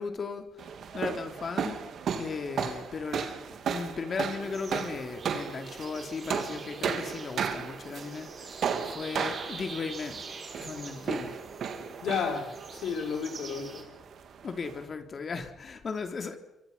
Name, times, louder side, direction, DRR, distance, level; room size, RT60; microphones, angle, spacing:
voice 1, 0.0-1.8 2.2-10.3 10.6-11.4 14.4-16.4, left 4 dB, 45° left, 3.5 m, -36 dB
sound 1, 0.6-14.8, right 7 dB, 65° right, 3.1 m, -35 dB
sound 2, 4.4-13.8, right 4 dB, 45° right, 5.6 m, -45 dB
voice 2, 11.9-13.9, left 6 dB, 70° left, 6.3 m, -32 dB
28.5 x 25.0 x 5.8 m
cardioid pair, 90°, 0 cm